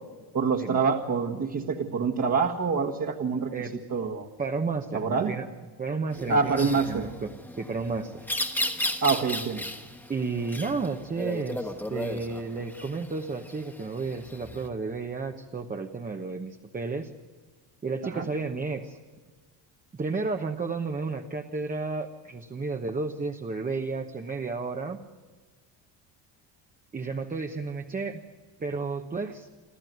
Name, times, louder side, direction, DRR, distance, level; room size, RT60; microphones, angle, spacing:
voice 1, 0.3-3.5 3.9-4.3 4.9-5.3 6.3-7.0 9.0-9.6 18.0-18.2, right 5 dB, 35° right, 0 dB, 1.7 m, -26 dB
voice 2, 4.4-5.5 5.8-8.3 10.1-17.1 17.8-19.0 19.9-25.0 26.9-28.2 28.6-29.5, right 4 dB, 20° right, 4 dB, 1.0 m, -32 dB
sound 1, 6.1-14.7, left 1 dB, 5° left, 1.4 m, -35 dB
28.5 x 13.0 x 9.3 m, 1.4 s
cardioid pair, 145°, 47 cm